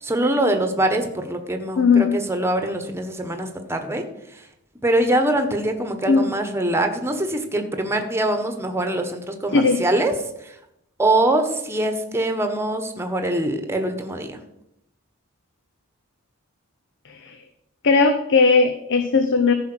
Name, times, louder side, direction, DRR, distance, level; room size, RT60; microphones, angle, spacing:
voice 1, 0.0-4.0 4.8-10.1 10.4-10.5 11.0-14.4, right 1 dB, 10° right, 6 dB, 1.2 m, -23 dB
voice 2, 1.8-2.1 6.1-6.3 9.5-9.8 17.0-17.4 17.8-19.5, left 4 dB, 55° left, 8 dB, 0.8 m, -18 dB
14.0 x 5.8 x 6.2 m, 0.81 s
head